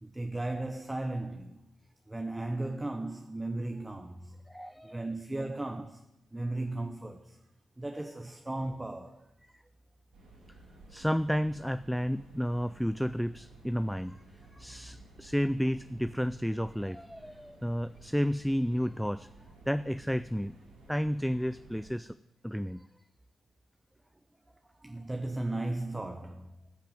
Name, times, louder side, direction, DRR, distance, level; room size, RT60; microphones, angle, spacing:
voice 1, 0.0-1.6 2.1-4.4 4.8-7.4 7.8-9.3 24.8-26.5, right 2 dB, 20° right, 0.9 m, -36 dB
voice 2, 4.5-5.1 10.9-14.2 14.5-19.3 19.7-20.6 20.9-22.2 22.4-22.9, equal, ahead, 0.4 m, -31 dB
sound 1, 10.1-21.9, right 2 dB, 85° right, 5.5 m, -55 dB
14.0 x 5.7 x 9.1 m
hypercardioid pair, 40°, 0 cm